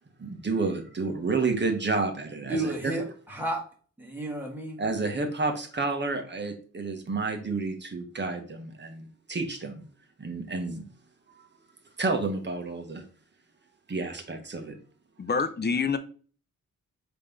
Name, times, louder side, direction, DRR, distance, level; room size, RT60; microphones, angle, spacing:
voice 1, 0.2-3.0 4.8-9.8 10.2-10.9 11.3-11.4 12.0-13.0 13.9-14.7, right 3 dB, 35° right, 4 dB, 1.4 m, -30 dB
voice 2, 2.4-3.7 4.0-4.8, right 2 dB, 5° right, -2 dB, 1.9 m, -32 dB
voice 3, 15.2-16.0, left 5 dB, 30° left, 10 dB, 0.7 m, -26 dB
5.4 x 3.3 x 5.4 m, 0.40 s
wide cardioid pair, 120°, 32 cm